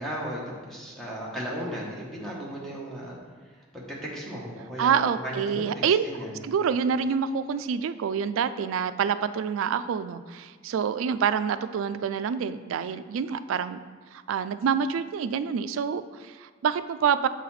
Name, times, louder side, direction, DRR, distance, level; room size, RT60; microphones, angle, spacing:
voice 1, 0.0-3.2 3.7-5.6 6.0-6.3, equal, ahead, -5 dB, 1.1 m, -35 dB
voice 2, 4.8-6.0 6.4-13.8 14.1-17.3, right 7 dB, 80° right, 13 dB, 0.3 m, -27 dB
7.5 x 4.1 x 4.2 m, 1.5 s
head